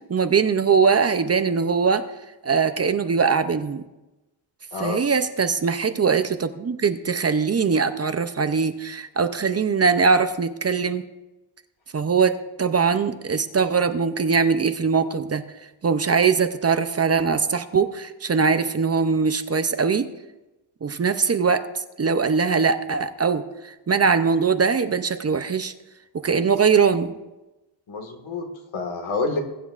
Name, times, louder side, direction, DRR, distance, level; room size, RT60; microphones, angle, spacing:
voice 1, 0.1-2.0 2.4-3.8 4.8-11.0 11.9-15.4 15.8-20.1 20.8-25.7 26.2-27.2, right 5 dB, 35° right, 10 dB, 0.5 m, -21 dB
voice 2, 4.7-5.0 27.9-29.4, left 3 dB, 80° left, 4 dB, 1.7 m, -28 dB
21.0 x 9.2 x 2.4 m, 1.0 s
wide cardioid pair, 145°, 47 cm